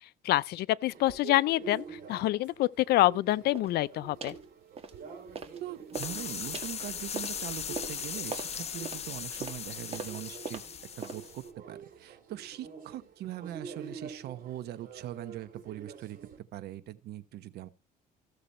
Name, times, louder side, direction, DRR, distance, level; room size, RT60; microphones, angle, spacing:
voice 1, 0.0-4.3, left 16 dB, 70° left, 0.5 m, -27 dB
sound 1, 0.9-16.4, right 6 dB, 55° right, 3.6 m, -48 dB
sound 2, 3.5-3.8 4.2-4.5 4.8-5.6 5.9-11.4, right 5 dB, 35° right, 1.7 m, -42 dB
voice 2, 5.6-10.6 11.0-17.7, right 13 dB, 75° right, 0.9 m, -42 dB
sound 3, 5.9-11.5, left 7 dB, 40° left, 0.9 m, -38 dB
14.5 x 6.8 x 4.2 m
cardioid pair, 110°, 17 cm